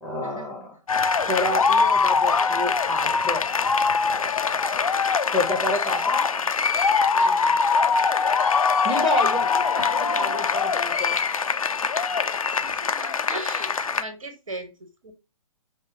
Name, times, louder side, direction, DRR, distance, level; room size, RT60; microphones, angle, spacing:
voice 1, 0.0-0.8 1.3-3.5 5.3-6.3 8.8-11.2, left 2 dB, ahead, 0.7 m, -29 dB
sound 1, 0.9-14.0, left 5 dB, 85° left, 0.4 m, -23 dB
voice 2, 5.3-5.7 7.1-7.6 12.4-15.1, right 2 dB, 80° right, 1.3 m, -39 dB
5.4 x 2.0 x 2.8 m
figure-of-eight pair, 125°, 17 cm